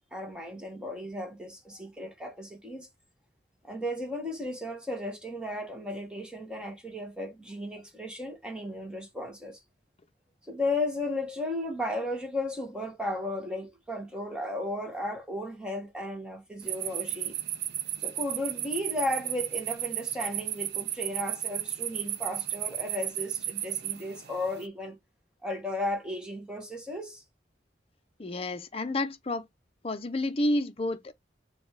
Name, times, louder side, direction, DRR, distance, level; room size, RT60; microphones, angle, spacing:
voice 1, 0.1-2.9 3.6-9.6 10.4-17.3 18.0-25.0 25.4-27.2, left 1 dB, 5° right, 1.0 m, -35 dB
sound 1, 16.6-24.7, right 13 dB, 60° right, 0.6 m, -34 dB
voice 2, 28.2-29.5 29.8-31.1, left 1 dB, 35° left, 0.7 m, -30 dB
6.9 x 2.4 x 3.2 m
head